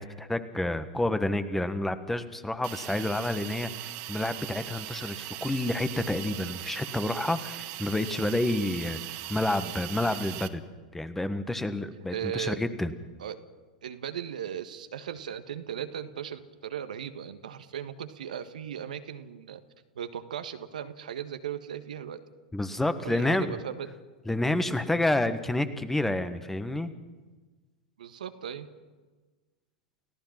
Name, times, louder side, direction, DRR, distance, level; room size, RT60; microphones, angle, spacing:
voice 1, 0.0-10.6 10.9-12.9 22.5-23.6 24.2-26.9, left 1 dB, 5° left, 11 dB, 1.5 m, -29 dB
Hiss, 2.6-10.5, right 16 dB, 45° right, 1.4 m, -39 dB
voice 2, 12.1-12.6 13.2-13.4 13.8-19.6 19.9-22.2 23.0-23.9 28.0-28.7, right 9 dB, 70° right, 10 dB, 1.5 m, -37 dB
29.5 x 16.5 x 6.0 m, 1.3 s
figure-of-eight pair, 90°, 5 cm